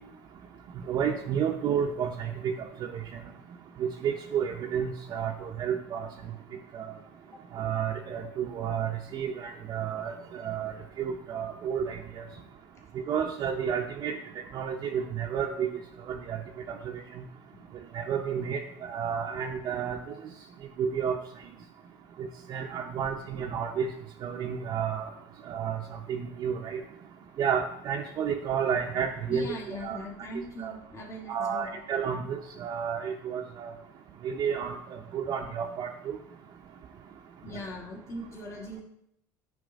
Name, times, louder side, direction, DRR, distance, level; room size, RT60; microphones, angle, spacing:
voice 1, 0.9-2.5 3.8-6.1 6.7-6.9 7.5-12.2 13.1-14.2 14.5-15.7 16.1-16.4 17.9-18.6 18.9-20.0 20.8-21.2 22.2-23.9 24.2-25.1 25.5-25.8 26.1-26.8 27.4-29.5 29.8-30.0 30.6-30.7 31.3-33.7 34.2-36.2, right 7 dB, 40° right, 1 dB, 0.6 m, -31 dB
voice 2, 29.3-31.9 32.2-32.3 37.4-38.8, equal, 30° left, -1 dB, 1.5 m, -40 dB
8.8 x 3.2 x 5.2 m, 0.76 s
supercardioid pair, 110°, 10 cm